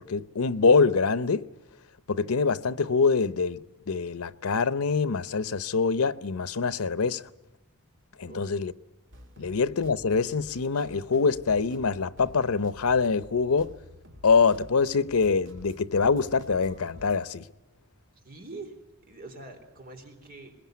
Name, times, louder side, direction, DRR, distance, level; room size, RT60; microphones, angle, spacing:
voice 1, 0.0-1.5 2.1-7.2 8.2-8.7 9.4-13.7 14.2-17.4, left 4 dB, 90° left, 0.8 m, -24 dB
voice 2, 8.3-8.6 9.4-9.5 18.2-18.8 19.1-20.6, right 2 dB, 45° right, 3.9 m, -44 dB
sound 1, 9.1-17.2, left 1 dB, 60° right, 2.6 m, -50 dB
21.5 x 21.5 x 9.3 m
head